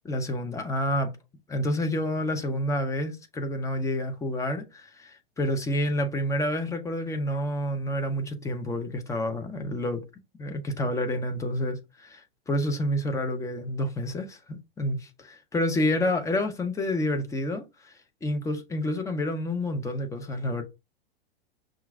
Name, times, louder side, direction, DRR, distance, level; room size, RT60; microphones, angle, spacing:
voice 1, 0.1-1.1 1.5-10.0 10.4-17.9 18.2-20.6, left 1 dB, 10° left, 0.8 m, -29 dB
5.8 x 2.6 x 3.4 m
figure-of-eight pair, 100°, 30 cm